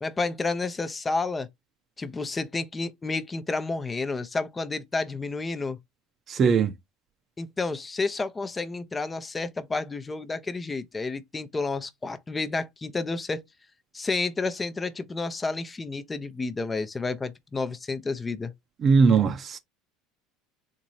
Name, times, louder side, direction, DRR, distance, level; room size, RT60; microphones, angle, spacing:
voice 1, 0.0-1.5 2.0-5.8 7.4-13.4 13.9-18.5, left 3 dB, 20° left, 0.7 m, -30 dB
voice 2, 6.3-6.7 18.8-19.6, right 5 dB, 40° right, 0.6 m, -20 dB
3.9 x 2.6 x 3.0 m
hypercardioid pair, 80°, 0 cm